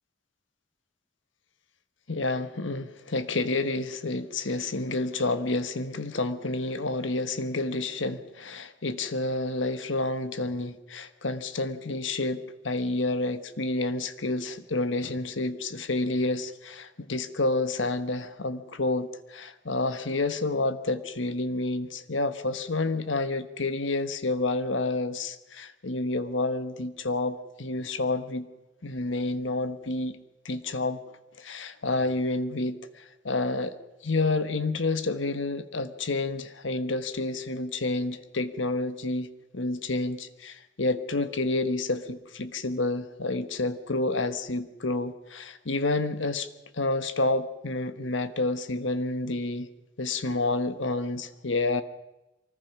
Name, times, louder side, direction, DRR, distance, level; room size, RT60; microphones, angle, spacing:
voice 1, 2.1-28.5 28.8-30.2 30.4-31.0 31.4-33.7 34.0-39.3 39.5-49.7 50.0-51.8, left 2 dB, 80° left, 10 dB, 1.3 m, -29 dB
24.0 x 20.0 x 6.1 m, 0.97 s
head